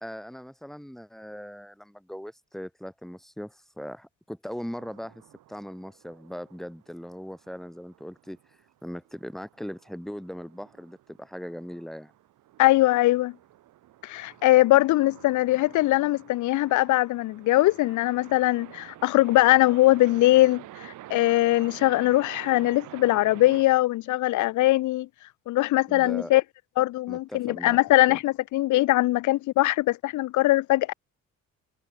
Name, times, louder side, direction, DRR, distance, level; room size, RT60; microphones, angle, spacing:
voice 1, 0.0-5.2 5.5-12.1 25.9-26.3 27.1-27.8 28.1-28.2, equal, ahead, 1.5 m, -39 dB
sound 1, 4.8-23.6, right 14 dB, 85° right, 7.0 m, -48 dB
voice 2, 12.6-13.3 14.0-25.1 25.5-26.4 26.8-30.9, left 17 dB, 75° left, 0.6 m, -21 dB
cardioid pair, 90°, 30 cm